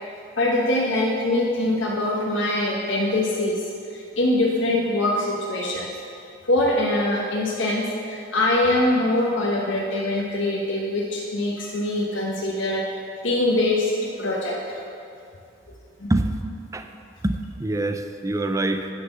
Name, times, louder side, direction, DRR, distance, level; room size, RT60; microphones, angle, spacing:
voice 1, 0.4-3.6 3.9-5.9 6.4-14.8 16.0-16.1, left 1 dB, 75° left, -3 dB, 1.1 m, -23 dB
voice 2, 17.2-18.9, right 1 dB, 15° right, 7 dB, 0.5 m, -25 dB
9.5 x 5.9 x 6.9 m, 2.6 s
head